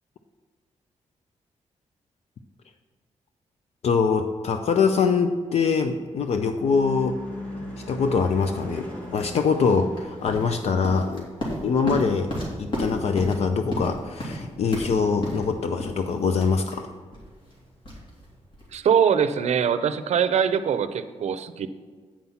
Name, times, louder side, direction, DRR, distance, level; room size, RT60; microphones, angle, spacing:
voice 1, 3.8-7.2 7.6-11.3 11.6-12.3 12.6-16.9, left 5 dB, 60° left, 7 dB, 0.5 m, -23 dB
Car passing by / Truck / Engine, 5.5-14.0, left 1 dB, 15° left, 2.4 m, -41 dB
sound 1, 9.9-18.7, equal, 45° left, 2.6 m, -34 dB
voice 2, 18.7-21.7, right 7 dB, 65° right, 11 dB, 0.5 m, -22 dB
8.6 x 5.6 x 5.7 m, 1.5 s
wide cardioid pair, 160°, 12 cm